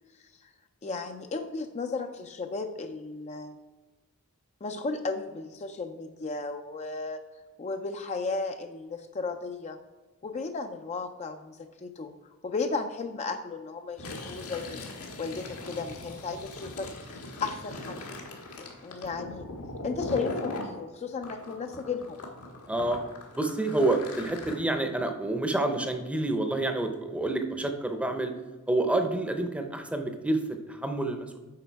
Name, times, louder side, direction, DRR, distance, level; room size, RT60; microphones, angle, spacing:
voice 1, 0.8-3.6 4.6-7.2 7.6-9.8 10.2-12.1 12.4-14.8 15.2-16.9 17.4-18.0 18.6-19.5 19.8-22.2, left 4 dB, 30° left, 6 dB, 0.4 m, -34 dB
Fill (with liquid), 13.9-20.7 21.2-24.5, left 2 dB, 85° left, 1.5 m, -40 dB
voice 2, 22.7-23.0 23.3-28.3 28.7-31.4, right 2 dB, 5° right, 6 dB, 0.7 m, -28 dB
8.3 x 5.3 x 4.6 m, 1.3 s
head